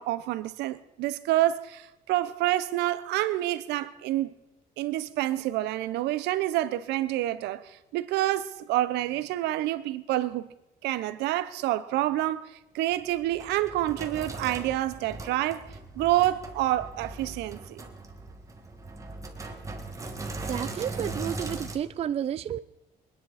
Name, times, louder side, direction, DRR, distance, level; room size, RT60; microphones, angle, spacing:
voice 1, 0.0-4.3 4.8-7.6 7.9-10.5 10.8-12.5 12.7-15.6 16.0-17.8, right 14 dB, 85° right, 0.9 m, -28 dB
Sink (filling or washing), 12.9-21.8, right 3 dB, 20° right, 1.8 m, -39 dB
voice 2, 20.4-22.6, right 9 dB, 40° right, 0.4 m, -31 dB
24.0 x 10.5 x 4.2 m
cardioid pair, 110°, 17 cm